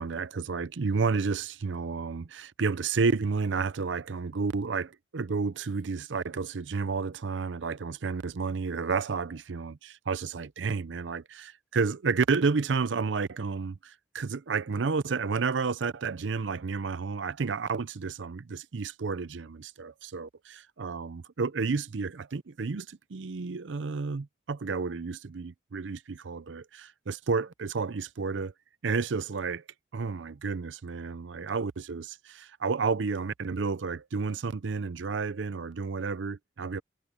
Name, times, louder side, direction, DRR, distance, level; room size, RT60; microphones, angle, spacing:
voice 1, 0.0-28.5 28.8-29.6 29.9-36.8, right 4 dB, 85° right, 0.6 m, -31 dB
head